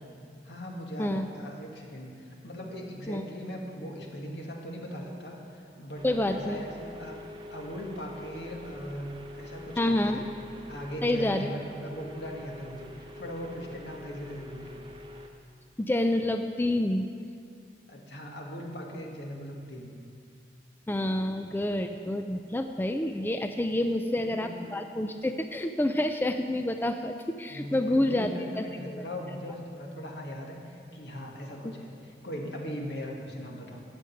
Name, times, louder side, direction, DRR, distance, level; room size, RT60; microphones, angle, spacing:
voice 1, 0.4-7.2 7.5-10.3 10.7-14.8 17.9-19.9 23.8-24.7 27.5-33.8, equal, 75° left, 0 dB, 2.0 m, -39 dB
sound 1, 5.9-15.3, left 1 dB, 30° right, 0.9 m, -46 dB
voice 2, 6.0-6.6 9.8-10.2 11.0-11.5 15.8-17.1 20.9-28.3 28.6-28.7 28.9-29.0 31.6-31.7, left 1 dB, 10° left, 6 dB, 0.3 m, -28 dB
15.0 x 5.3 x 9.1 m, 2.3 s
head